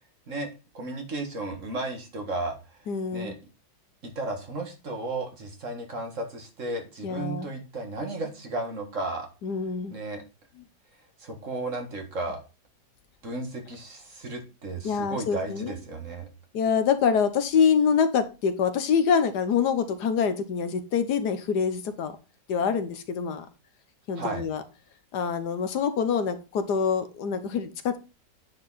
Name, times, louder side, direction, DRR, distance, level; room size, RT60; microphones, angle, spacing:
voice 1, 0.7-2.8 3.1-3.3 4.0-9.3 9.9-10.2 11.2-12.4 13.2-16.3 24.2-24.5, right 2 dB, 50° right, 3 dB, 2.1 m, -34 dB
voice 2, 2.9-3.3 7.0-7.5 9.4-9.9 14.8-15.8 16.5-22.2 22.5-23.4 24.1-24.6 25.1-28.0, left 6 dB, 75° left, 10 dB, 1.5 m, -25 dB
9.3 x 5.0 x 4.1 m, 0.29 s
omnidirectional pair, 1.8 m